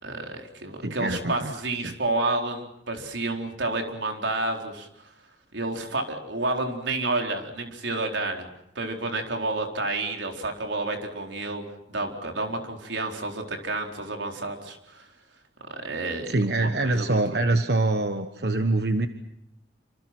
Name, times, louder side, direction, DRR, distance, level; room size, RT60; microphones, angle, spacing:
voice 1, 0.0-5.1 5.5-8.5 8.7-11.6 11.9-15.1 15.7-17.5, right 2 dB, 85° right, 3 dB, 4.5 m, -30 dB
voice 2, 0.8-1.5 1.8-1.9 16.3-19.1, right 2 dB, 60° right, 7 dB, 1.3 m, -24 dB
28.0 x 26.5 x 6.2 m, 0.78 s
head